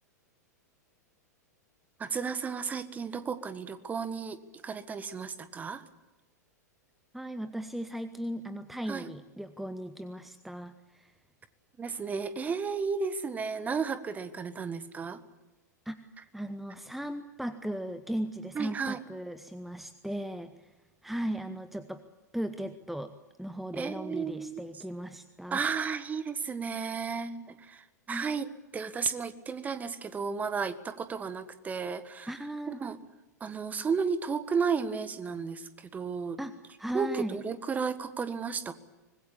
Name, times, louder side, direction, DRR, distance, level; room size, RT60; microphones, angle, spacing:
voice 1, 2.0-5.8 8.9-9.1 11.8-15.2 18.5-19.0 23.7-24.6 25.5-32.3 32.7-33.0 33.4-36.4 36.9-38.7, right 5 dB, 15° right, 12 dB, 1.6 m, -33 dB
voice 2, 7.1-11.1 15.8-20.7 21.0-22.0 22.3-23.1 23.4-25.7 28.1-28.3 32.3-32.8 36.4-37.4, right 1 dB, ahead, 11 dB, 1.1 m, -37 dB
25.5 x 21.0 x 8.6 m, 1.1 s
figure-of-eight pair, 95°, 9 cm